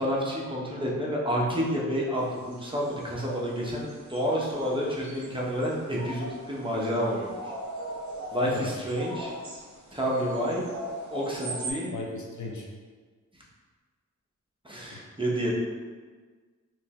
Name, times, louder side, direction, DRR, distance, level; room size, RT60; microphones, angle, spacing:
voice 1, 0.0-7.3 8.3-9.3 9.9-10.7 11.1-11.9 14.6-15.5, equal, 15° right, -5 dB, 0.7 m, -29 dB
sound 1, 2.1-11.7, right 1 dB, 60° right, 0.9 m, -41 dB
voice 2, 8.4-8.8 11.9-12.7, left 2 dB, 65° left, -1 dB, 0.6 m, -36 dB
3.3 x 3.0 x 2.8 m, 1.5 s
wide cardioid pair, 85°, 32 cm